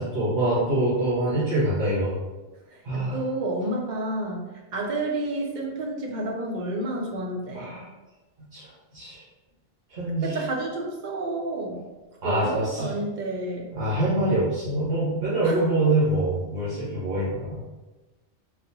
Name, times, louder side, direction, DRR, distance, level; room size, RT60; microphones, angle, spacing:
voice 1, 0.0-2.1 2.8-3.2 7.5-7.8 8.5-9.2 9.9-10.4 12.2-12.9 13.7-17.6, right 1 dB, 85° right, -12 dB, 1.4 m, -25 dB
voice 2, 2.7-4.5 4.7-7.9 10.2-11.8 12.2-13.7 15.4-15.6, right 2 dB, 55° right, 0 dB, 0.6 m, -30 dB
4.0 x 2.0 x 2.8 m, 1.2 s
omnidirectional pair, 1.1 m